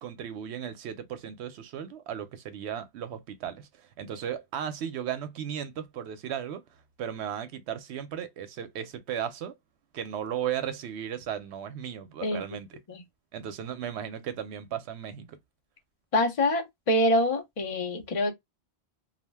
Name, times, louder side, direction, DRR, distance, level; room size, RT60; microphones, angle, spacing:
voice 1, 0.0-6.6 7.0-9.5 9.9-12.8 13.3-15.4, right 9 dB, 85° right, 0.9 m, -36 dB
voice 2, 16.1-18.3, left 1 dB, 35° left, 0.7 m, -25 dB
2.4 x 2.1 x 3.3 m
omnidirectional pair, 1.1 m